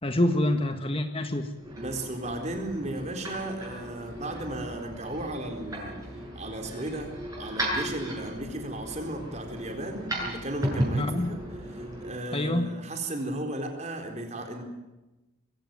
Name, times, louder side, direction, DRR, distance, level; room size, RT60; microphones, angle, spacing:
voice 1, 0.0-1.5 11.0-11.3 12.3-12.7, left 1 dB, 25° left, 7 dB, 1.5 m, -26 dB
sound 1, 1.5-12.1, right 1 dB, 15° right, 7.6 m, -35 dB
voice 2, 1.7-6.0 6.3-7.1 7.4-11.4 11.7-14.6, right 1 dB, 35° right, 4 dB, 4.1 m, -35 dB
22.0 x 16.5 x 9.5 m, 1.0 s
head